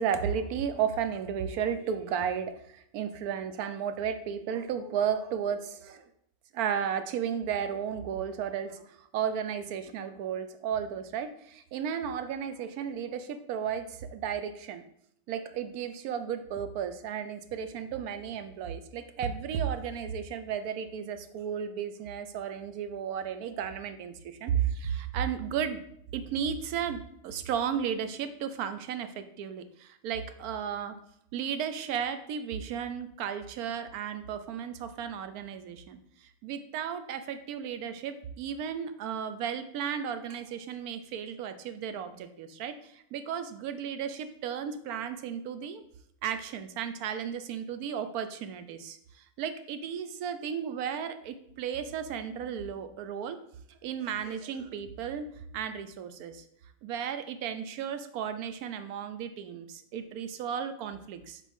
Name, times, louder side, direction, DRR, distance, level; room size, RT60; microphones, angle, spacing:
voice 1, 0.0-6.1 6.5-14.8 15.3-25.8 26.1-31.0 31.3-45.8 46.2-53.4 53.7-55.3 55.5-56.4 56.8-61.4, right 8 dB, 85° right, 10 dB, 1.1 m, -34 dB
7.2 x 4.3 x 3.5 m, 0.71 s
omnidirectional pair, 1.5 m